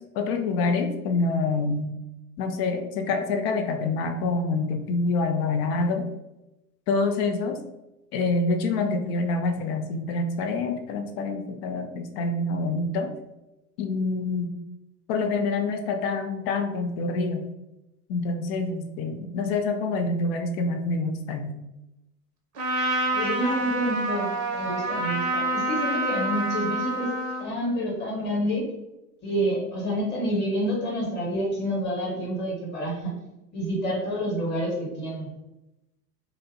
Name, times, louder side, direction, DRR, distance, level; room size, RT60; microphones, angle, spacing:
voice 1, 0.1-1.9 2.4-6.1 6.9-7.6 8.1-13.1 13.8-14.5 15.1-17.4 18.1-21.6, left 3 dB, 45° left, 6 dB, 0.4 m, -26 dB
Trumpet, 22.5-27.5, right 1 dB, 35° right, 0.7 m, -27 dB
voice 2, 23.1-27.1 27.4-28.7 29.2-33.1 33.5-35.3, equal, 20° left, -2 dB, 1.1 m, -28 dB
2.5 x 2.0 x 2.6 m, 0.94 s
hypercardioid pair, 85°, 47 cm